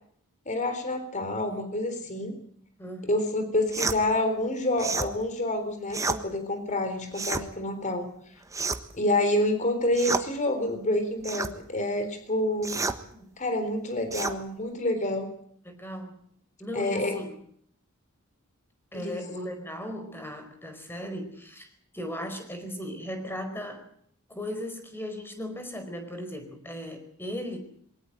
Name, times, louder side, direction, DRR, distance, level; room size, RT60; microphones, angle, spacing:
voice 1, 0.5-2.4 3.1-8.1 8.9-12.8 13.4-15.3 16.7-17.2 18.9-19.2, left 1 dB, 35° left, 8 dB, 3.8 m, -28 dB
voice 2, 2.8-3.2 8.0-8.1 13.1-13.4 15.6-16.2 16.6-17.4 18.9-21.7 21.9-23.9 24.3-27.6, equal, 10° left, 7 dB, 4.7 m, -37 dB
sound 1, 3.7-4.0 4.8-5.1 5.9-6.2 7.1-7.5 8.5-9.0 9.9-10.3 11.2-11.5 12.6-13.0 14.1-14.4, right 3 dB, 15° right, 1.3 m, -30 dB
22.5 x 18.0 x 7.9 m, 0.64 s
head